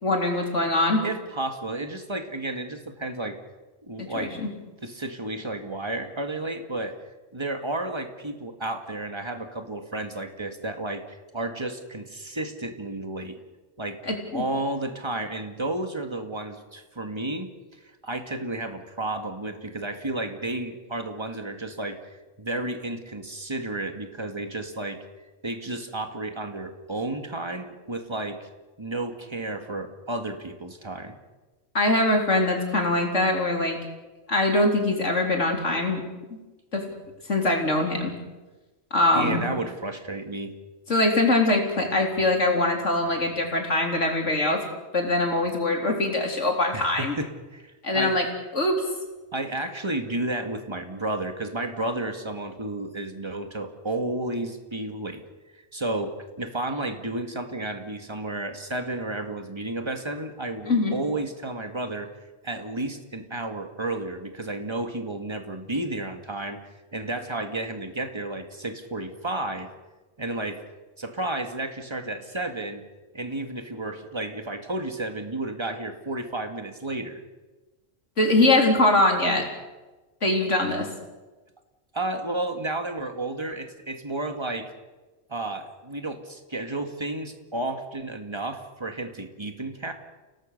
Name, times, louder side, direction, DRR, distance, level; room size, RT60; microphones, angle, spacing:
voice 1, 0.0-1.0 4.0-4.5 14.1-14.4 31.7-33.8 34.3-36.0 36.7-36.8 37.3-38.1 38.9-39.4 40.9-44.6 44.9-47.1 47.8-48.3 48.5-48.8 60.7-61.0 78.2-79.4 80.2-80.9, left 2 dB, 85° left, 2 dB, 4.0 m, -22 dB
voice 2, 1.0-3.4 3.8-4.3 4.8-7.0 7.3-11.0 11.3-13.4 13.8-14.0 14.3-17.5 18.0-22.0 22.4-25.0 25.4-28.5 28.8-31.2 39.1-40.6 46.7-48.2 48.6-48.7 49.3-55.2 55.5-62.1 62.4-66.6 66.9-69.7 70.2-70.6 71.0-72.8 73.1-77.2 81.9-84.7 85.3-89.9, right 2 dB, 25° right, 6 dB, 2.1 m, -32 dB
30.0 x 18.0 x 6.7 m, 1.2 s
omnidirectional pair, 1.2 m